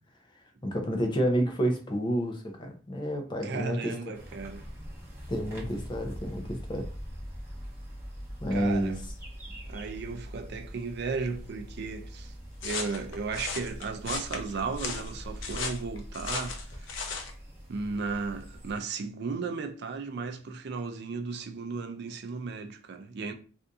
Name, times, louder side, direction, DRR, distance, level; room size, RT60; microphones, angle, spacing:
voice 1, 0.6-4.2 5.3-6.9 8.4-8.9, equal, 25° left, 0.6 m, -29 dB
voice 2, 3.4-4.6 8.5-9.0 9.6-12.3 12.6-17.0 17.7-23.3, right 4 dB, 60° right, 0.4 m, -35 dB
sound 1, 4.1-18.8, equal, 10° right, 0.9 m, -42 dB
sound 2, 12.6-17.3, left 5 dB, 75° left, 0.6 m, -36 dB
2.6 x 2.6 x 3.5 m
head